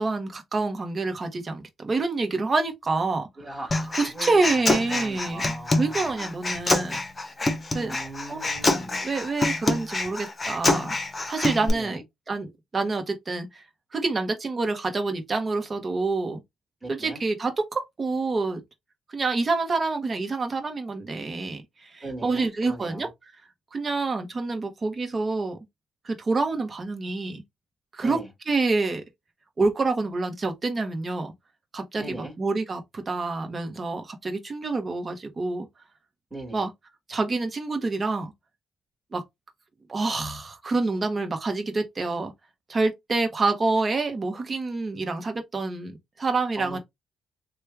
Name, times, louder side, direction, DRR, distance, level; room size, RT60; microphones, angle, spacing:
voice 1, 0.0-3.6 4.0-7.0 7.7-8.0 8.3-8.4 9.0-10.9 11.3-12.0 12.3-13.6 13.9-16.4 16.9-18.6 19.1-23.3 23.7-25.6 26.0-27.4 27.9-28.2 28.5-29.0 29.6-31.3 31.7-35.7 36.5-36.7 37.1-38.3 39.1-39.2 39.9-42.3 42.7-46.8, right 3 dB, 35° right, 1.1 m, -27 dB
voice 2, 3.4-6.3 7.8-9.0 11.6-12.0 16.8-17.2 22.0-23.1 28.0-28.3 32.0-32.3 36.3-36.6 46.5-46.8, right 1 dB, 15° right, 1.7 m, -39 dB
Human voice, 3.7-11.7, left 2 dB, 25° left, 0.9 m, -26 dB
3.1 x 2.3 x 3.3 m
cardioid pair, 90°, 0 cm